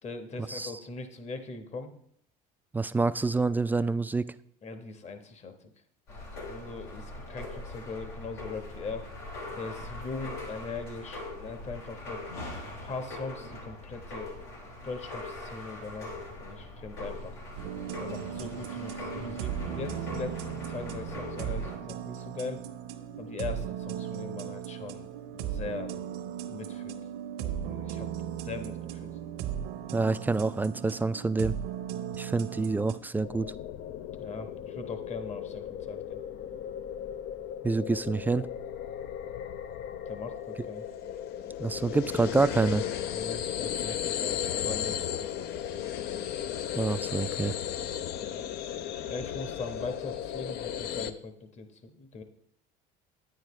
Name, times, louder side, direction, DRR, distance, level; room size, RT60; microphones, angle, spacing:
voice 1, 0.0-1.9 4.6-5.7 6.4-9.1 9.5-12.2 12.8-14.3 14.8-16.1 16.4-17.4 18.0-22.6 23.2-25.9 26.5-27.0 27.4-28.1 28.4-29.2 34.2-36.2 40.1-40.9 43.0-45.8 48.2-48.4 49.1-52.2, left 4 dB, 35° left, 8 dB, 1.2 m, -40 dB
voice 2, 2.7-4.3 29.9-31.5 32.1-33.5 37.6-38.5 41.6-42.8 46.7-47.5, right 3 dB, 10° right, 13 dB, 0.3 m, -27 dB
sound 1, 6.1-21.8, left 2 dB, 85° left, 3.1 m, -41 dB
sound 2, 17.6-33.0, right 9 dB, 70° right, 0.9 m, -37 dB
sound 3, 33.2-51.1, left 10 dB, 60° left, 0.6 m, -35 dB
9.5 x 9.0 x 3.2 m, 0.68 s
supercardioid pair, 95°, 19 cm